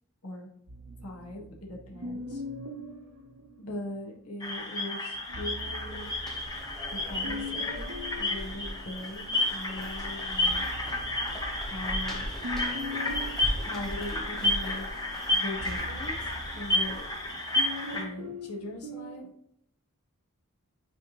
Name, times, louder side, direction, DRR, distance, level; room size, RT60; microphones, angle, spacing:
voice 1, 0.2-0.5 1.0-2.4 3.6-6.1 6.9-10.9 11.7-12.3 13.6-15.0 15.3-17.0 17.9-19.3, left 1 dB, 80° left, -1 dB, 1.6 m, -40 dB
sound 1, 0.7-4.2 5.1-9.6 10.0-19.3, left 1 dB, 90° right, 0.9 m, -42 dB
sound 2, 4.4-18.0, left 2 dB, 15° left, 1.4 m, -31 dB
sound 3, 5.3-17.4, equal, ahead, 1.1 m, -41 dB
9.2 x 3.6 x 3.0 m, 0.74 s
head